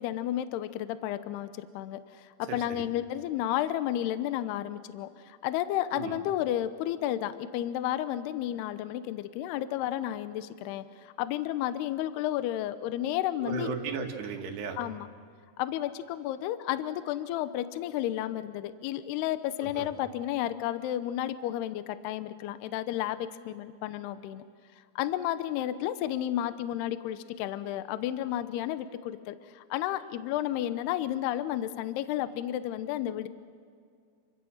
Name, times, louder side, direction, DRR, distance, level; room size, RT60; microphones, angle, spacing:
voice 1, 0.0-13.7 14.8-15.1 15.6-24.4 25.0-33.3, left 12 dB, 75° left, 12 dB, 2.7 m, -32 dB
voice 2, 2.5-2.8 5.9-6.2 13.4-14.8 19.6-19.9, right 6 dB, 75° right, 3 dB, 4.0 m, -36 dB
29.5 x 24.5 x 6.4 m, 2.2 s
omnidirectional pair, 5.0 m